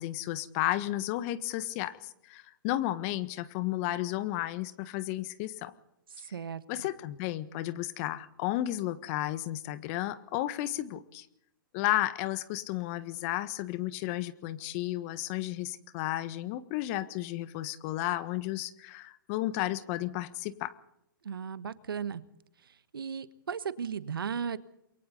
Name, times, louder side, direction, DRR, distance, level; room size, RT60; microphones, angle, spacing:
voice 1, 0.0-5.7 6.2-6.3 6.7-11.3 11.7-20.7, left 15 dB, 40° left, 14 dB, 1.4 m, -33 dB
voice 2, 6.3-6.6 21.2-22.2 22.9-24.6, right 7 dB, 75° right, 14 dB, 1.4 m, -35 dB
29.0 x 23.0 x 4.0 m, 0.81 s
hypercardioid pair, 130°, 12 cm